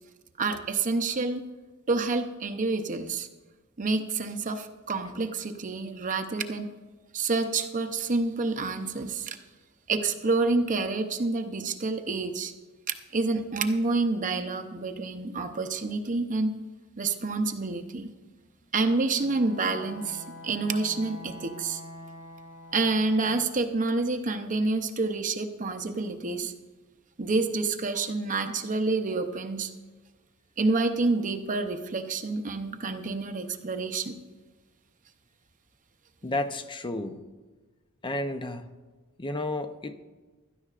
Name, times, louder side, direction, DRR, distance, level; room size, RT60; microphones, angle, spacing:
voice 1, 0.4-1.4 1.9-3.3 3.8-6.7 7.1-9.4 9.9-12.5 13.1-16.5 17.0-18.1 18.7-21.8 22.7-26.5 27.2-29.7 30.6-34.2, right 3 dB, 35° right, 7 dB, 0.7 m, -28 dB
Bowed string instrument, 19.2-23.5, left 1 dB, 85° left, 4.1 m, -45 dB
voice 2, 36.2-37.2 38.0-38.7 39.2-40.0, left 2 dB, 20° left, 9 dB, 0.6 m, -32 dB
16.5 x 12.5 x 2.5 m, 1.3 s
head